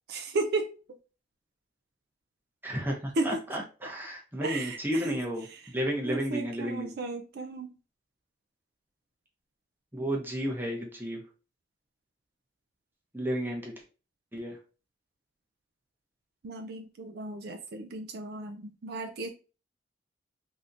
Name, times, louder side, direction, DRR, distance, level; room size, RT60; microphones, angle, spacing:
voice 1, 0.1-0.7 3.2-3.4 4.4-5.2 5.5-5.6 6.1-7.7 16.4-19.3, right 2 dB, 55° right, 5 dB, 0.4 m, -34 dB
voice 2, 2.6-5.5 5.7-6.9 9.9-11.2 13.1-13.7 14.3-14.6, equal, 10° right, 0 dB, 0.7 m, -32 dB
3.4 x 2.7 x 2.5 m, 0.34 s
head